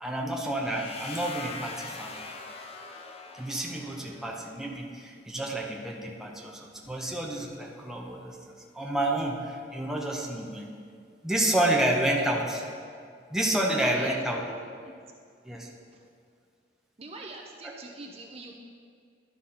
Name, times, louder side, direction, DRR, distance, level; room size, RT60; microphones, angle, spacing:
voice 1, 0.0-2.1 3.3-8.4 8.7-10.7 11.2-12.6 13.3-14.4 15.4-15.7, right 1 dB, 5° right, -2 dB, 0.8 m, -29 dB
sound 1, 0.6-4.5, left 3 dB, 35° left, 0.6 m, -42 dB
voice 2, 13.5-14.2 14.8-14.9 15.9-16.1 17.0-18.6, right 2 dB, 35° right, 1 dB, 0.6 m, -43 dB
11.5 x 4.0 x 5.7 m, 2.2 s
head